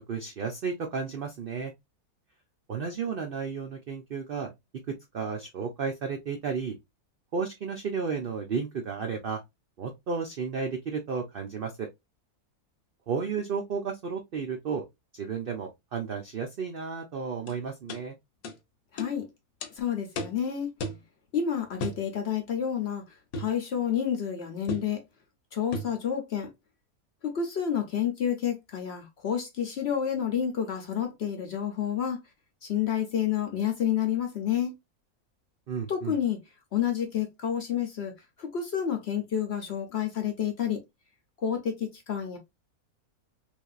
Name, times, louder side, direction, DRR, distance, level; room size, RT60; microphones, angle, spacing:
voice 1, 0.1-1.7 2.7-4.5 5.1-6.8 7.3-9.4 9.8-11.9 13.1-14.8 15.1-18.1 35.7-36.1, right 5 dB, 65° right, 0.5 m, -33 dB
sound 1, 17.5-17.6 17.9-18.0 18.4-18.6 19.0-19.1 19.6-19.7 20.2-20.4 20.8-21.0 21.8-22.0 23.3-23.6 24.7-24.9 25.7-26.0, left 1 dB, 70° left, 1.1 m, -35 dB
voice 2, 18.9-19.3 19.7-20.7 21.3-25.0 25.5-26.5 27.2-32.2 32.6-34.7 35.9-36.4 36.7-38.1 38.4-40.8 41.4-42.4, left 9 dB, 55° left, 0.8 m, -29 dB
3.2 x 2.6 x 2.3 m
omnidirectional pair, 1.6 m